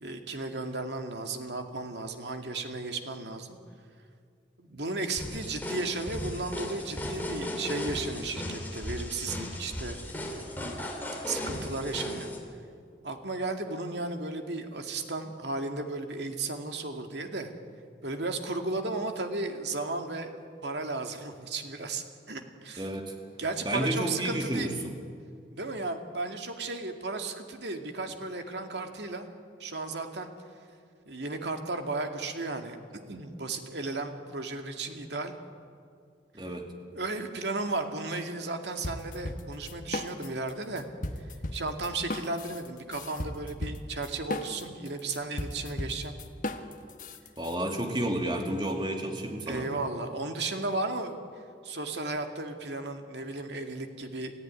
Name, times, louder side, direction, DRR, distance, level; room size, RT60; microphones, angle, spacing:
voice 1, 0.0-3.6 4.6-10.0 11.3-12.3 13.0-17.5 18.0-22.9 23.4-24.7 25.5-29.3 29.6-30.3 31.1-32.8 33.1-35.3 36.9-40.8 41.2-46.1 49.4-51.2 51.6-54.3, right 3 dB, 70° right, 5 dB, 2.2 m, -34 dB
sound 1, 5.2-12.4, left 1 dB, 10° left, 3.1 m, -36 dB
voice 2, 22.8-23.2 23.6-24.9 36.3-36.7 47.4-49.7, right 1 dB, 25° right, 3 dB, 2.4 m, -31 dB
sound 2, 38.8-40.5 40.8-47.5, left 1 dB, 45° left, 1.3 m, -36 dB
27.5 x 15.0 x 9.7 m, 2.2 s
head